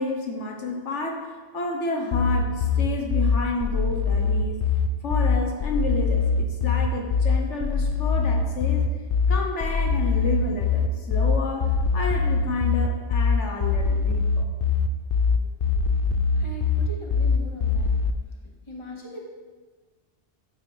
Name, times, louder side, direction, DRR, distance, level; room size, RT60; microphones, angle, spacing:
voice 1, 0.0-4.6 5.0-8.9 9.3-14.5, left 2 dB, 80° left, 1 dB, 1.5 m, -30 dB
sound 1, 2.1-18.1, left 5 dB, 55° left, 0.8 m, -23 dB
voice 2, 16.4-17.9 18.7-19.2, left 1 dB, 25° left, -2 dB, 1.9 m, -39 dB
12.5 x 8.6 x 3.5 m, 1.4 s
omnidirectional pair, 1.2 m